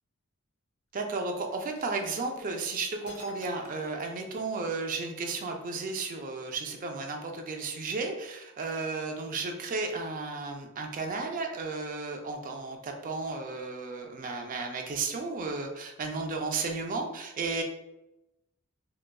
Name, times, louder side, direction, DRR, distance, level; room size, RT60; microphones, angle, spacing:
voice 1, 0.9-17.6, right 3 dB, 40° right, 3 dB, 0.4 m, -34 dB
sound 1, 1.5-2.6 3.0-4.9, left 3 dB, 65° left, 0.6 m, -52 dB
3.8 x 2.2 x 2.2 m, 0.94 s
head